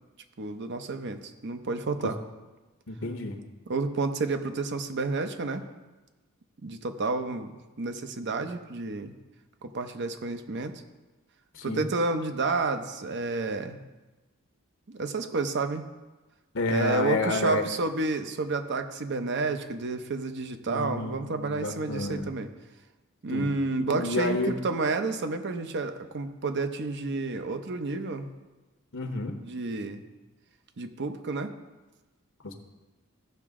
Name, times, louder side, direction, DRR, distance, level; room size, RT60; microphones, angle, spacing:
voice 1, 0.4-2.2 3.7-5.7 6.6-9.2 9.6-10.8 11.6-13.8 14.9-15.9 16.7-22.5 23.2-28.3 29.4-30.0 30.8-31.5, right 3 dB, 55° right, 8 dB, 0.7 m, -30 dB
voice 2, 2.9-3.4 11.5-11.9 16.5-17.6 20.7-22.3 23.3-23.5 23.8-24.6 28.9-29.4 32.4-32.5, left 2 dB, 65° left, 5 dB, 1.0 m, -30 dB
15.5 x 5.9 x 3.7 m, 1.2 s
head